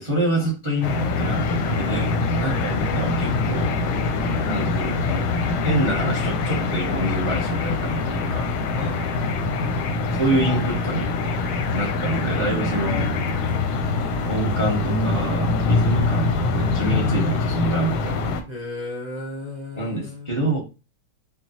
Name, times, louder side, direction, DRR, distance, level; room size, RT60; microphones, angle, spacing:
voice 1, 0.0-3.8 4.5-5.3 5.6-8.5 10.1-11.1 11.7-13.1 14.3-18.1 19.8-20.6, right 1 dB, 25° right, 0.7 m, -26 dB
sound 1, 0.8-18.4, left 3 dB, 90° left, 1.5 m, -24 dB
voice 2, 8.7-9.8 18.5-20.3, left 2 dB, 65° right, 0.4 m, -35 dB
5.8 x 2.3 x 2.8 m
omnidirectional pair, 2.2 m